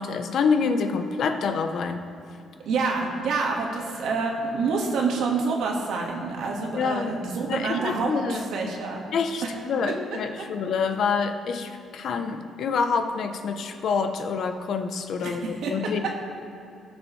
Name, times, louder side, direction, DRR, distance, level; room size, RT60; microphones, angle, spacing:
voice 1, 0.0-2.0 6.8-7.1 7.5-8.4 9.1-16.1, left 5 dB, 60° left, 7 dB, 0.7 m, -27 dB
voice 2, 2.7-9.0 9.4-9.5 9.9-10.0 15.2-15.4 15.6-15.7, right 4 dB, 80° right, 0 dB, 1.6 m, -27 dB
18.0 x 6.3 x 3.2 m, 2.7 s
cardioid pair, 135°, 0 cm